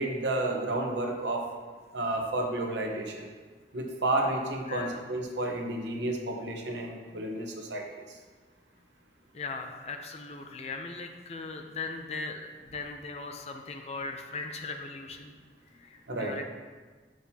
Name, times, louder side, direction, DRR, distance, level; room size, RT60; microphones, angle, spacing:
voice 1, 0.0-1.4 1.9-3.3 3.7-8.0 16.1-16.4, right 2 dB, 90° right, 1 dB, 1.0 m, -31 dB
voice 2, 4.7-5.0 9.3-15.3 15.8-16.4, left 3 dB, 35° left, 4 dB, 0.5 m, -39 dB
7.2 x 6.3 x 2.8 m, 1.4 s
head